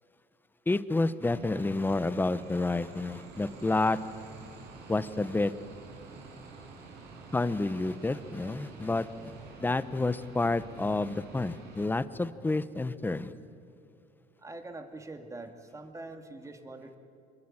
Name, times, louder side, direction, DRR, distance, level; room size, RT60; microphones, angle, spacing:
voice 1, 0.7-4.0 4.9-5.5 7.3-9.3 9.6-13.3, left 2 dB, 10° left, 14 dB, 0.9 m, -29 dB
sound 1, 1.2-11.9, right 4 dB, 70° right, 5.3 m, -48 dB
voice 2, 14.4-17.0, right 2 dB, 15° right, 6 dB, 2.4 m, -44 dB
25.5 x 22.0 x 8.9 m, 2.5 s
cardioid pair, 110°, 18 cm